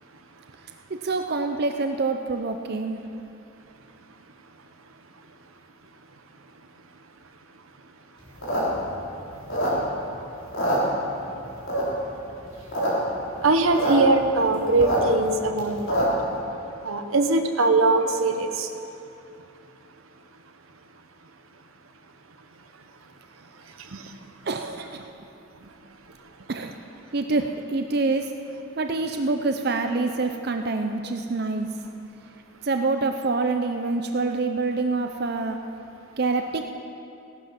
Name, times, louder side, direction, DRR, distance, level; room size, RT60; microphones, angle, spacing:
voice 1, 0.9-3.0 23.9-24.2 24.4-25.1 25.6-25.7 26.5-26.7 27.1-28.3 28.8-31.7 32.6-35.6 36.2-36.6, right 3 dB, 50° right, 6 dB, 0.6 m, -26 dB
sound 1, 8.3-10.1 10.4-11.3 11.7-12.1 12.5-12.9 13.2-13.3 13.4-13.9 14.3-16.3, equal, 75° left, 4.0 m, -25 dB
voice 2, 13.4-16.0 16.8-18.7, right 3 dB, 90° right, 6 dB, 1.1 m, -21 dB
17.0 x 11.5 x 5.9 m, 2.7 s
head